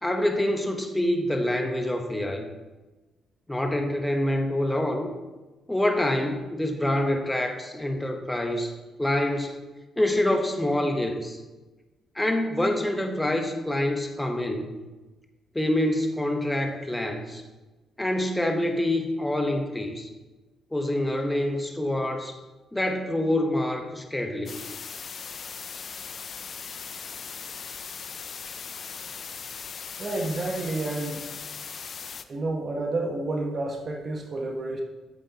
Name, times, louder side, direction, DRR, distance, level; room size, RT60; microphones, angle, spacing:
voice 1, 0.0-2.5 3.5-5.1 5.7-8.7 9.0-9.6 10.0-11.4 12.1-14.7 15.5-17.4 18.0-20.1 20.7-22.4 22.7-24.6, left 1 dB, 10° left, 5 dB, 1.0 m, -26 dB
sound 1, 24.5-32.2, left 6 dB, 50° left, 0.4 m, -39 dB
voice 2, 30.0-31.2 32.3-34.8, right 2 dB, 40° right, 1 dB, 0.9 m, -30 dB
7.9 x 7.6 x 2.9 m, 1.2 s
cardioid pair, 90°, 0 cm